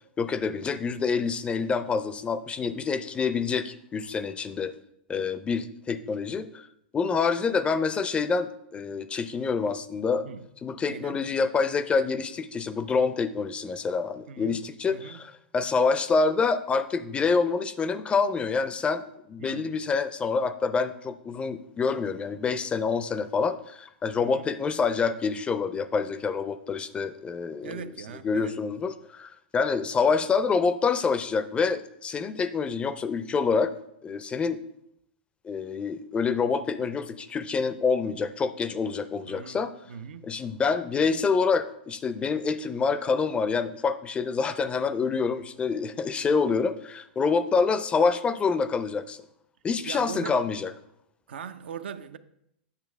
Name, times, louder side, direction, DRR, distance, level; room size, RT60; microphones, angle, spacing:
voice 1, 0.2-4.7 5.1-6.7 6.9-10.3 10.6-19.0 19.3-27.8 28.2-33.7 34.0-34.6 35.4-39.7 40.2-49.2 49.6-50.7, left 5 dB, 20° left, 0.4 m, -27 dB
voice 2, 10.8-11.2 14.3-15.2 19.4-19.7 24.2-24.5 27.6-28.6 39.2-40.3 49.8-50.4 51.3-52.2, right 7 dB, 75° right, 0.5 m, -40 dB
8.3 x 6.4 x 3.4 m
hypercardioid pair, 115°, 6 cm